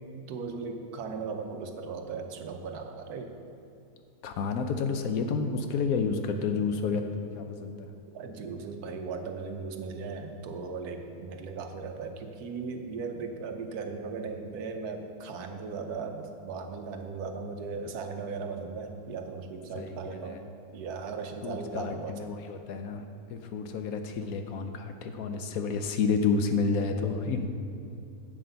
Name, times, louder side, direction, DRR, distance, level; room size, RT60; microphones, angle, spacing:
voice 1, 0.1-3.3 8.1-20.4 20.7-22.3, right 4 dB, 75° right, 5 dB, 1.3 m, -37 dB
voice 2, 4.2-7.9 19.8-20.4 21.4-23.0 23.3-27.5, left 5 dB, 70° left, 6 dB, 1.0 m, -30 dB
7.9 x 7.5 x 5.6 m, 2.5 s
omnidirectional pair, 1.7 m